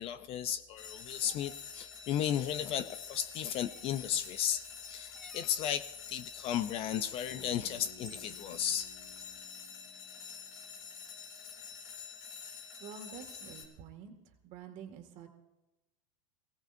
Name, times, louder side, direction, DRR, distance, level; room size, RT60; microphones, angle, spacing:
voice 1, 0.0-8.9, left 10 dB, 35° left, 0.5 m, -35 dB
sound 1, 0.8-13.6, left 6 dB, 90° left, 3.7 m, -47 dB
sound 2, 1.3-1.6 3.7-4.1 5.1-5.6 7.3-7.4 8.0-8.4, right 1 dB, ahead, 1.0 m, -55 dB
Bass guitar, 7.3-11.4, left 3 dB, 55° left, 3.6 m, -58 dB
voice 2, 12.8-15.3, right 7 dB, 40° right, 2.1 m, -48 dB
22.5 x 17.0 x 2.7 m
supercardioid pair, 140°, 18 cm